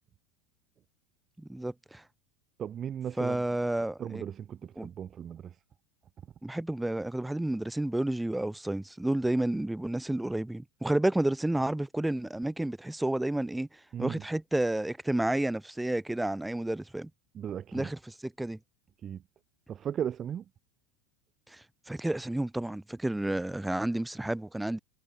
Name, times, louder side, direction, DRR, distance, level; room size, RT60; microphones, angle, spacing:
voice 1, 1.4-2.0 3.2-4.3 4.8-4.9 6.4-13.7 14.0-17.1 17.7-18.6 21.5-24.8, right 1 dB, 5° right, 4.3 m, -31 dB
voice 2, 2.6-3.4 4.0-5.5 13.9-14.2 17.3-17.9 19.0-19.2 19.7-20.4, right 9 dB, 35° right, 2.1 m, -36 dB
hypercardioid pair, 85°, 0 cm